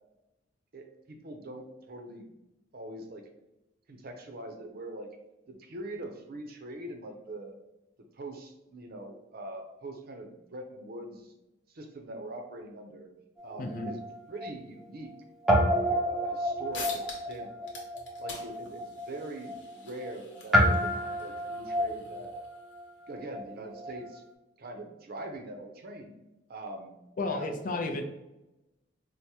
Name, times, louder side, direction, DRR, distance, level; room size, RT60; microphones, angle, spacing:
voice 1, 0.7-2.3 2.7-3.2 3.9-5.1 5.5-7.6 8.1-11.3 11.7-13.1 13.4-14.0 14.3-15.1 15.6-17.7 18.2-22.3 23.1-24.2 24.6-26.2 26.5-27.0 27.3-28.0, right 1 dB, 55° right, 4 dB, 0.5 m, -43 dB
Guitar, 13.4-15.2 15.4-24.1, equal, ahead, 0.6 m, -30 dB
voice 2, 13.6-13.9 27.2-28.0, left 2 dB, 45° left, 4 dB, 0.4 m, -32 dB
sound 1, 16.4-16.5 16.7-17.4 17.6-22.8, left 4 dB, 80° left, 0.9 m, -46 dB
4.6 x 2.1 x 2.8 m, 0.96 s
head